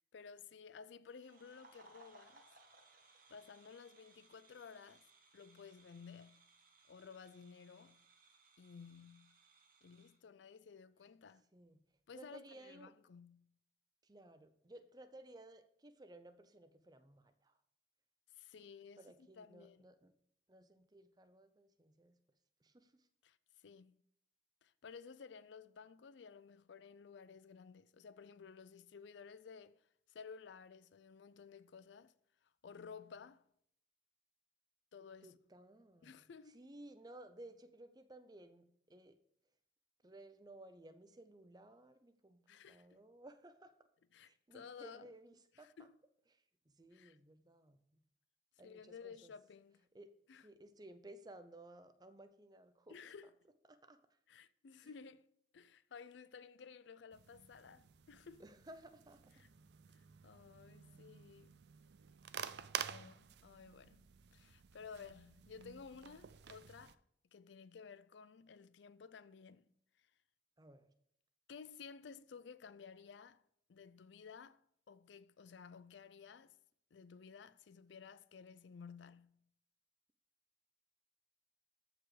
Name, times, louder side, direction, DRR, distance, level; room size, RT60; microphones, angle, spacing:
voice 1, 0.1-2.5 3.3-5.1 5.3-6.5 6.9-8.0 8.6-9.4 9.8-11.5 12.1-13.5 18.3-19.8 23.2-24.0 24.6-29.8 30.1-32.1 32.6-33.4 34.9-35.4 36.0-36.6 42.5-43.0 44.1-45.1 45.6-45.9 46.9-47.2 48.6-49.8 50.3-50.4 52.9-53.3 54.3-55.3 55.5-58.4 59.4-59.5 59.9-61.5 62.8-64.0 64.3-67.0 67.3-69.7 70.0-70.1 71.5-73.4 73.7-76.6 76.9-79.4, left 6 dB, 70° left, 0.4 m, -55 dB
sound 1, 1.1-10.2, right 3 dB, 45° right, 1.5 m, -66 dB
voice 2, 11.5-11.8 12.1-12.9 14.0-17.6 19.0-20.1 20.5-22.2 22.6-23.1 35.2-39.2 40.0-43.7 44.2-45.9 46.3-48.0 48.6-49.3 49.9-50.1 50.4-53.0 53.7-54.2 54.8-54.9 58.4-59.4 70.6-70.9, right 1 dB, 20° right, 0.6 m, -58 dB
sound 2, 57.1-67.0, right 8 dB, 65° right, 0.5 m, -50 dB
14.0 x 4.9 x 4.9 m
head